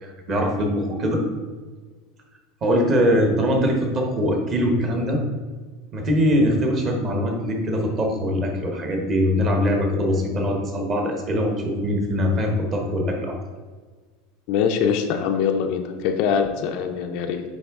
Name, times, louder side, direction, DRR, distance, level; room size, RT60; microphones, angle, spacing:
voice 1, 0.0-1.2 2.6-5.2 5.9-13.4, equal, 25° right, 2 dB, 1.0 m, -22 dB
voice 2, 14.5-17.4, left 7 dB, 45° left, 5 dB, 0.5 m, -23 dB
9.3 x 3.4 x 3.5 m, 1.4 s
supercardioid pair, 180°, 0 cm